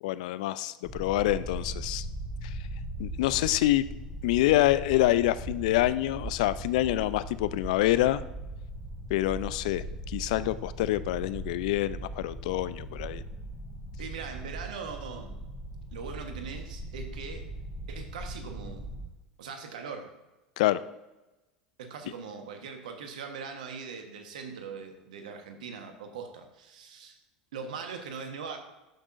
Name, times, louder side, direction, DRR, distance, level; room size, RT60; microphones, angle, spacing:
voice 1, 0.0-2.1 2.4-2.5 3.0-3.8 4.2-8.2 9.1-13.2 20.6-20.8, left 15 dB, 65° left, 16 dB, 0.4 m, -26 dB
sound 1, 0.8-19.1, right 1 dB, 5° right, 2.8 m, -39 dB
voice 2, 14.0-15.5 15.9-17.5 17.9-18.9 19.4-20.1 21.8-27.2 27.5-28.6, right 5 dB, 75° right, 5 dB, 1.2 m, -41 dB
12.0 x 6.0 x 2.6 m, 1.1 s
hypercardioid pair, 80°, 4 cm